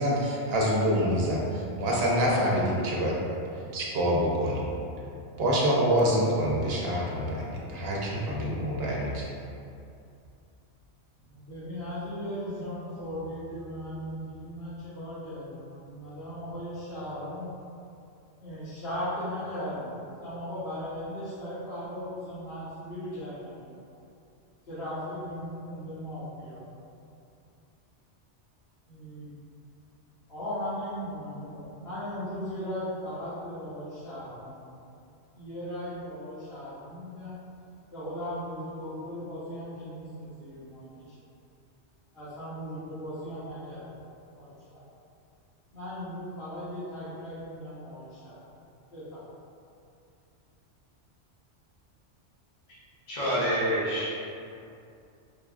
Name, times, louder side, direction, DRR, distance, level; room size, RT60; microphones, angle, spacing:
voice 1, 0.0-3.2 3.7-4.6 5.4-9.3, equal, 60° right, -3 dB, 0.9 m, -26 dB
voice 2, 11.3-17.5 18.4-23.8 24.7-26.6 28.9-29.3 30.3-34.7 35.3-37.4 37.9-41.1 42.1-43.8 44.3-44.8 45.7-48.4 48.9-49.2, equal, 55° left, -16 dB, 1.3 m, -37 dB
voice 3, 53.1-54.3, equal, 85° left, -9 dB, 1.4 m, -27 dB
4.8 x 2.3 x 2.3 m, 2.5 s
omnidirectional pair, 1.2 m